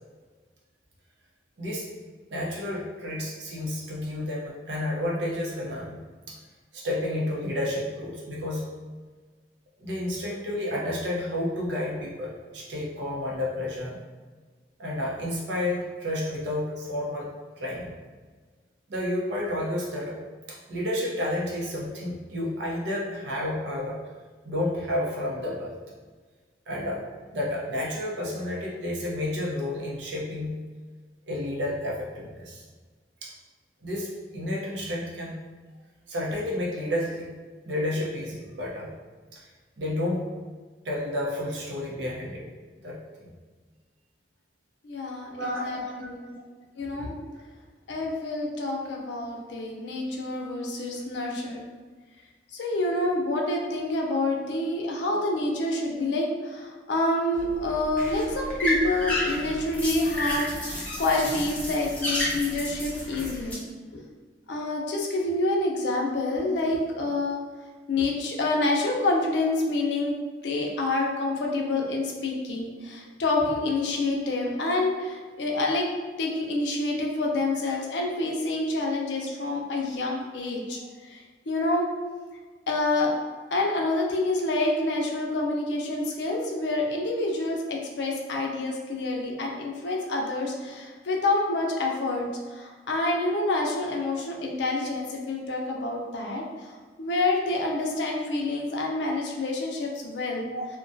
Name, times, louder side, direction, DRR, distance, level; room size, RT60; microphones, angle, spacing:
voice 1, 2.3-6.0 6.3-6.4 6.7-8.7 9.8-14.0 14.8-17.9 18.9-20.2 20.5-24.0 24.4-25.7 26.7-27.0 27.3-30.6 31.3-32.6 33.2-33.3 33.8-35.4 36.1-37.3 37.7-38.9 39.3-39.5 39.8-40.2 40.8-42.5 42.8-43.3 45.4-46.4 80.7-80.8 100.5-100.7, left 1 dB, 85° right, -3 dB, 0.6 m, -31 dB
voice 2, 44.8-46.2 46.8-47.1 47.9-51.6 52.5-63.6 63.9-64.0 64.5-67.4 67.9-70.1 70.4-75.9 76.2-81.9 82.7-83.1 83.5-100.5, left 2 dB, 85° left, 0 dB, 0.5 m, -27 dB
sound 1, 57.3-63.5, left 1 dB, 10° left, 0.5 m, -31 dB
2.2 x 2.2 x 2.5 m, 1.4 s
head